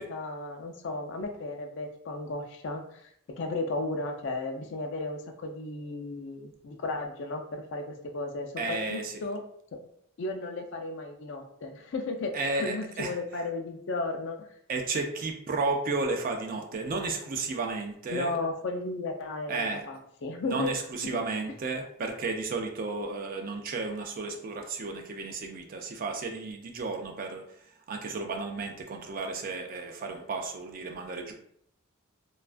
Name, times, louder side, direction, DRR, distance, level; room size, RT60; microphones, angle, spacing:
voice 1, 0.0-9.4 10.2-14.5 18.1-20.7 21.0-21.2, left 2 dB, 60° left, 3 dB, 0.4 m, -34 dB
voice 2, 8.6-9.2 12.3-13.1 14.7-18.4 19.5-19.9 20.4-27.4 27.9-31.3, right 3 dB, 45° right, 3 dB, 0.4 m, -33 dB
2.3 x 2.2 x 2.4 m, 0.69 s
head